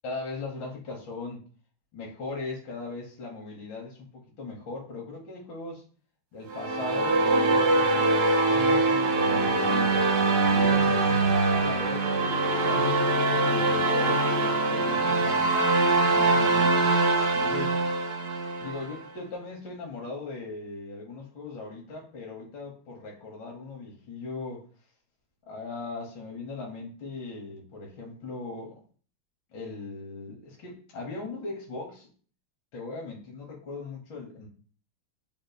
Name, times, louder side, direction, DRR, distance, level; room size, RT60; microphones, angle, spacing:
voice 1, 0.0-1.4 1.9-5.8 6.3-10.0 10.5-15.5 16.1-16.9 17.3-17.8 18.6-24.6 25.5-28.8 29.5-32.1 32.7-34.5, left 3 dB, 65° left, -1 dB, 1.6 m, -39 dB
sound 1, 6.5-18.9, right 3 dB, 60° right, 1.2 m, -23 dB
5.9 x 4.0 x 2.2 m, 0.42 s
omnidirectional pair, 2.3 m